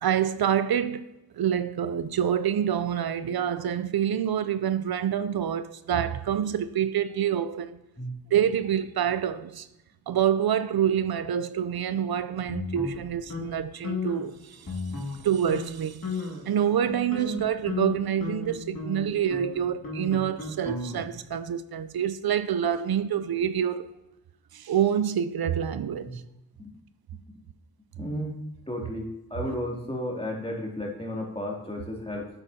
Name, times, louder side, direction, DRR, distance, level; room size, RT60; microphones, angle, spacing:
voice 1, 0.0-1.1 1.3-7.8 8.3-9.7 10.1-23.9 24.5-26.2, right 9 dB, 80° right, 0.5 m, -27 dB
sound 1, 12.5-13.5 13.8-14.3 14.7-15.2 15.5-15.7 16.0-16.5 16.9-21.2, left 3 dB, 70° left, 2.4 m, -34 dB
voice 2, 28.0-28.4 28.7-32.3, left 1 dB, 15° left, 2.6 m, -33 dB
9.0 x 8.1 x 2.8 m
cardioid pair, 50°, 37 cm